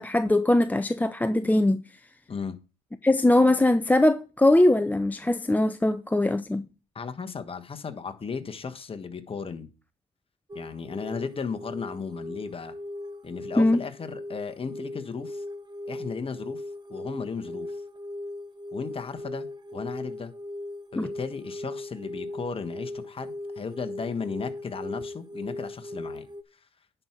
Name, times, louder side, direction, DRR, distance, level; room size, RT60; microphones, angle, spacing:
voice 1, 0.0-1.8 3.0-6.6 13.6-13.8 21.0-21.1, left 1 dB, 10° left, 0.5 m, -21 dB
voice 2, 6.9-9.7 10.5-12.7 13.2-15.4 15.9-16.6 16.9-17.8 18.7-19.5 19.7-20.3 20.9-26.3, left 5 dB, 25° left, 1.3 m, -35 dB
sound 1, 10.5-26.4, left 1 dB, 20° right, 1.0 m, -38 dB
9.8 x 4.6 x 5.9 m
supercardioid pair, 75°, 20 cm